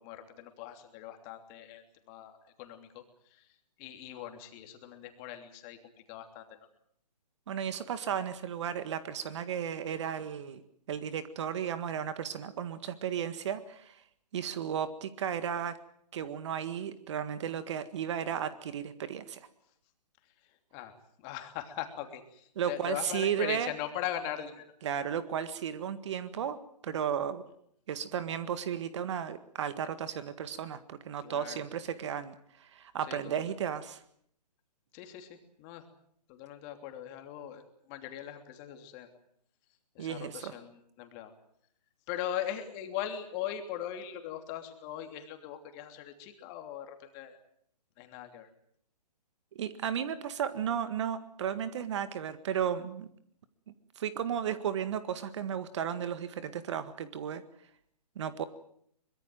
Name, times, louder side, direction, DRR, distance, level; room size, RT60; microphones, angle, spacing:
voice 1, 0.0-3.0 3.3-3.4 3.8-5.8 6.1-6.5 20.7-20.9 21.2-24.7 31.2-31.6 33.1-33.4 34.9-35.8 36.3-39.1 39.9-41.3 42.1-47.4 48.0-48.5, left 11 dB, 25° left, 6 dB, 3.0 m, -40 dB
voice 2, 7.5-10.6 10.9-14.0 14.3-15.7 16.1-19.4 22.6-23.7 24.8-26.6 26.8-27.4 27.9-34.0 40.0-40.5 49.6-53.1 54.0-57.4 58.2-58.4, right 8 dB, 45° right, 12 dB, 1.7 m, -34 dB
24.0 x 22.0 x 7.7 m, 0.68 s
hypercardioid pair, 145°, 21 cm